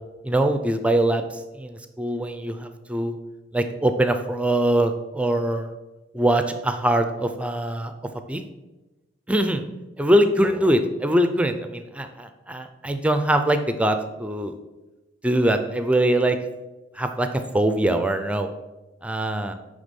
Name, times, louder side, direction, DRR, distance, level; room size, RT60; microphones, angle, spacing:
voice 1, 0.2-1.2 1.6-3.2 3.5-5.7 6.1-7.9 8.3-8.4 9.3-9.6 10.0-14.5 15.2-16.4 17.0-17.3 17.5-18.5 19.0-19.5, right 1 dB, 5° right, 8 dB, 0.4 m, -22 dB
9.4 x 3.4 x 5.3 m, 1.1 s
head